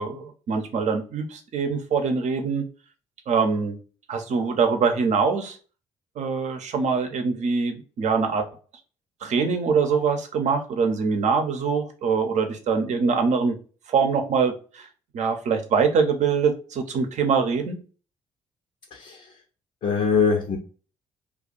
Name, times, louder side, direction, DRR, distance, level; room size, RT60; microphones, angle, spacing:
voice 1, 0.0-2.6 3.3-3.8 4.1-5.6 6.2-8.5 9.2-13.6 13.9-14.9 15.1-17.8, right 5 dB, 55° right, 5 dB, 0.7 m, -23 dB
voice 2, 18.9-19.2 19.8-20.6, left 5 dB, 55° left, 1 dB, 0.7 m, -22 dB
2.4 x 2.3 x 3.9 m, 0.38 s
hypercardioid pair, 50°, 14 cm